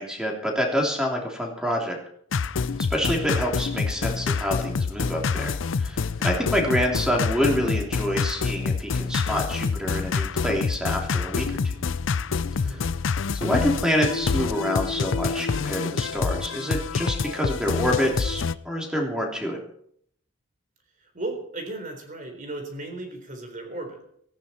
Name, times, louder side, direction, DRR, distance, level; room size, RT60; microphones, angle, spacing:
voice 1, 0.0-2.0 2.9-11.6 12.6-12.7 13.3-19.6, equal, 5° right, 0 dB, 3.2 m, -27 dB
sound 1, 2.3-18.5, left 5 dB, 75° left, 0.5 m, -27 dB
voice 2, 12.5-12.9 21.0-24.1, right 2 dB, 40° right, 5 dB, 3.9 m, -36 dB
17.5 x 15.0 x 4.4 m, 0.66 s
head